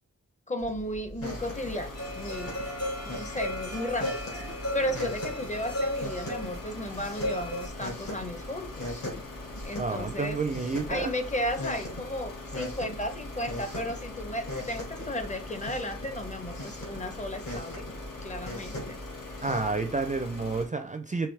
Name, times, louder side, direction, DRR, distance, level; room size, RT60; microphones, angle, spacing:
voice 1, 0.5-2.5 3.0-4.2 4.5-9.0 9.6-10.4 10.9-17.8 18.2-19.0, left 1 dB, 25° left, 7 dB, 0.6 m, -34 dB
sound 1, 0.6-19.7, equal, 70° left, 2.4 m, -41 dB
sound 2, 1.2-20.6, left 2 dB, 85° left, 1.3 m, -42 dB
sound 3, 2.0-7.7, left 1 dB, 50° left, 2.2 m, -35 dB
voice 2, 9.8-11.1 19.4-21.3, right 4 dB, 25° right, 7 dB, 0.4 m, -30 dB
4.8 x 2.9 x 3.2 m, 0.35 s
wide cardioid pair, 125°, 31 cm